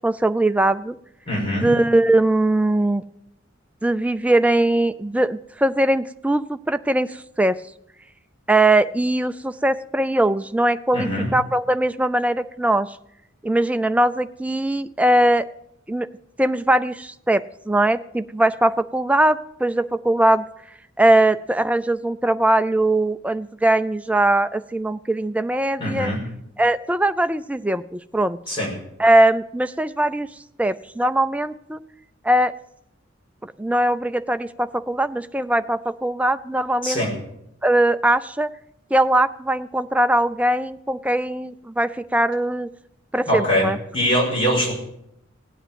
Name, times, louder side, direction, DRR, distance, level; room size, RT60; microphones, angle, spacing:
voice 1, 0.0-1.0 1.4-3.0 3.8-7.6 8.5-13.0 13.4-15.5 15.9-16.1 16.4-20.4 21.0-26.1 26.6-28.4 29.0-30.3 30.6-31.8 32.2-32.5 33.4-37.0 37.6-38.5 38.9-42.7 43.1-43.8, right 1 dB, 5° right, 11 dB, 0.5 m, -20 dB
voice 2, 1.3-1.7 10.9-11.3 25.8-26.2 28.5-28.7 36.8-37.1 43.3-44.7, equal, 25° left, -1 dB, 5.6 m, -22 dB
17.0 x 9.3 x 7.7 m, 0.77 s
head